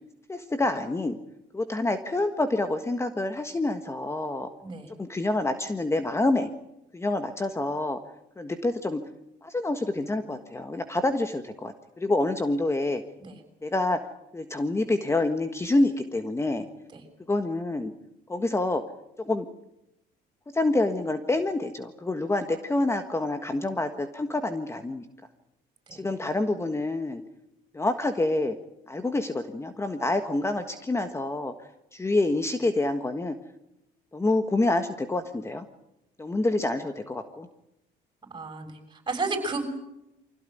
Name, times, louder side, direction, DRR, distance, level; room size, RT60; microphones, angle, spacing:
voice 1, 0.3-1.2 1.5-4.5 5.0-6.5 6.9-8.0 8.4-9.0 9.4-13.0 13.6-14.0 14.3-16.7 17.3-17.9 18.3-18.8 19.2-19.5 20.5-25.0 25.9-27.2 27.7-28.6 28.9-31.5 31.9-33.3 34.1-35.6 36.2-37.5, left 2 dB, 15° left, 8 dB, 1.6 m, -27 dB
voice 2, 38.3-39.6, right 3 dB, 25° right, 5 dB, 7.1 m, -33 dB
24.5 x 16.5 x 9.3 m, 0.88 s
cardioid pair, 110°, 17 cm